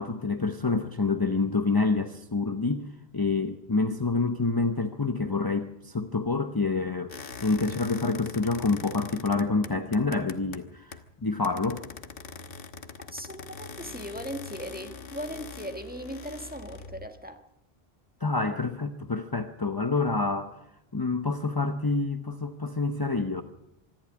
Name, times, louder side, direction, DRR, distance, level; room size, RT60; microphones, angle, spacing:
voice 1, 0.0-2.9 3.1-7.1 7.4-11.8 18.2-20.5 20.9-23.4, left 3 dB, 25° left, 8 dB, 0.9 m, -27 dB
sound 1, 7.1-11.1 11.4-17.1, left 4 dB, 65° left, 1.4 m, -43 dB
voice 2, 13.1-17.4, equal, 10° right, 6 dB, 1.6 m, -38 dB
25.5 x 12.0 x 8.6 m, 0.82 s
omnidirectional pair, 1.1 m